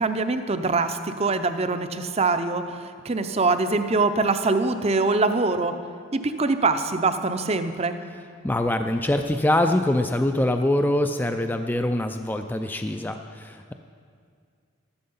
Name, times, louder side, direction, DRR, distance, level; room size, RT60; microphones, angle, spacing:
voice 1, 0.0-5.7 6.1-8.0, right 3 dB, 30° right, 9 dB, 0.6 m, -23 dB
voice 2, 8.4-13.7, left 1 dB, 10° left, 6 dB, 0.3 m, -24 dB
13.5 x 11.5 x 5.5 m, 2.2 s
head